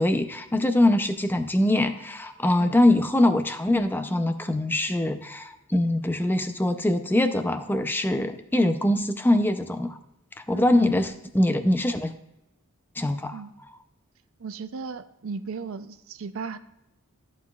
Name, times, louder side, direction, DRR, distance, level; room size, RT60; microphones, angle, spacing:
voice 1, 0.0-10.0 10.5-12.1 13.0-13.4, left 1 dB, 10° left, 9 dB, 0.4 m, -23 dB
voice 2, 10.5-10.9 13.3-13.5 14.4-16.6, right 5 dB, 65° right, 11 dB, 0.5 m, -36 dB
13.5 x 7.4 x 2.3 m, 0.90 s
head